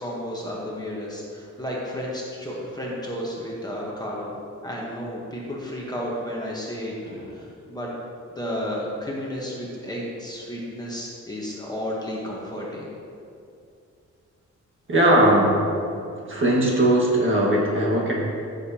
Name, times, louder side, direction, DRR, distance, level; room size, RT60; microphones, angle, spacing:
voice 1, 0.0-4.3 4.6-6.9 7.3-7.9 8.3-12.9, equal, 15° left, -4 dB, 1.1 m, -32 dB
voice 2, 14.9-15.6 16.2-18.1, right 1 dB, 40° right, -3 dB, 1.6 m, -19 dB
13.5 x 6.6 x 2.9 m, 2.5 s
wide cardioid pair, 180°, 30 cm